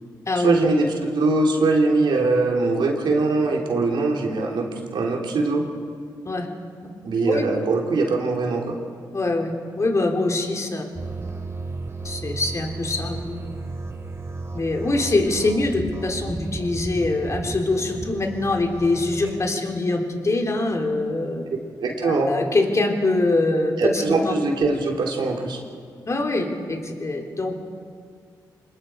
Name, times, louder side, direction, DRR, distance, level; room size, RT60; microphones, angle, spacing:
voice 1, 0.4-4.7 4.9-5.6 7.0-8.8 21.8-22.3 23.8-25.6, right 3 dB, 75° right, 0 dB, 3.3 m, -21 dB
voice 2, 9.1-10.8 12.0-13.4 14.5-21.4 22.0-24.3 26.1-27.6, left 2 dB, 40° left, 1 dB, 3.5 m, -24 dB
sound 1, 10.9-19.5, right 3 dB, 35° right, 2.1 m, -34 dB
27.5 x 20.5 x 4.7 m, 2.2 s
supercardioid pair, 55°, 8 cm